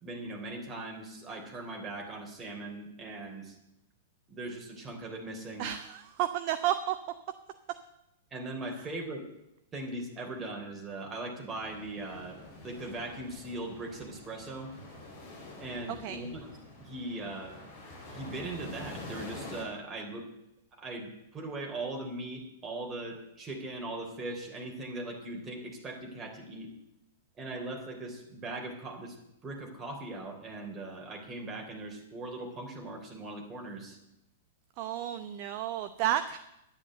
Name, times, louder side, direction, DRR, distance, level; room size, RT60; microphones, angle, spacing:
voice 1, 0.0-3.5 4.3-5.7 8.3-9.3 9.7-12.4 12.6-14.7 15.6-17.6 18.1-20.3 20.8-26.7 27.4-29.2 29.4-34.0, right 2 dB, 20° right, 1 dB, 3.6 m, -40 dB
voice 2, 5.6-7.0 16.0-16.2 34.8-36.4, right 12 dB, 40° right, 10 dB, 0.7 m, -31 dB
sound 1, 11.5-19.6, left 2 dB, 45° left, 4.5 m, -47 dB
10.5 x 9.9 x 7.9 m, 0.84 s
figure-of-eight pair, 100°, 0 cm